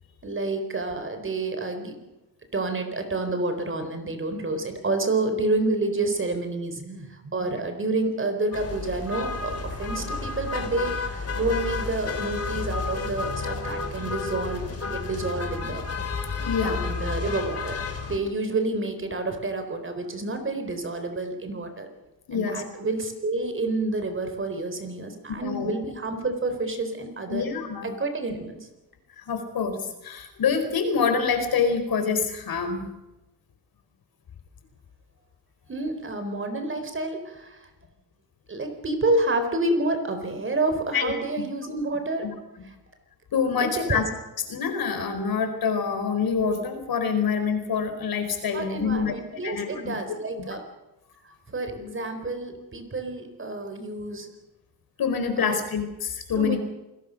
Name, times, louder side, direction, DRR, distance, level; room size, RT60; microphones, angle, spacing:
voice 1, 0.2-2.0 2.5-15.9 16.6-21.9 22.3-27.4 27.8-28.7 35.7-37.7 38.5-42.3 43.6-44.1 48.5-50.6 51.5-54.3 55.4-55.6 56.4-56.6, right 2 dB, 30° right, 7 dB, 4.2 m, -29 dB
sound 1, 8.5-18.2, left 4 dB, 40° left, 3.8 m, -31 dB
voice 2, 16.4-16.9 22.3-22.6 25.4-25.7 27.3-27.9 29.2-32.9 40.9-41.1 42.2-42.3 43.3-44.0 44.5-49.1 49.4-50.0 55.0-56.6, left 6 dB, 65° left, 7 dB, 4.8 m, -26 dB
27.5 x 19.0 x 6.5 m, 1.0 s
cardioid pair, 120°, 39 cm